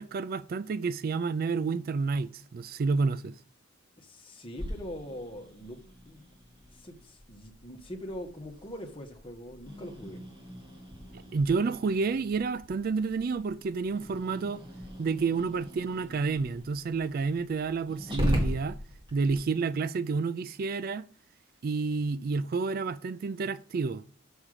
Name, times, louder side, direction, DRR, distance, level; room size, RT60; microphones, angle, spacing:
voice 1, 0.0-3.3 11.3-14.6 15.0-18.8 19.1-21.1 21.6-24.0, right 4 dB, 45° right, 0.3 m, -29 dB
voice 2, 4.0-5.8 6.1-6.2 6.8-10.2, equal, 25° left, 1.6 m, -42 dB
Growling, 4.6-19.4, equal, 25° right, 2.9 m, -39 dB
7.3 x 6.0 x 6.5 m
head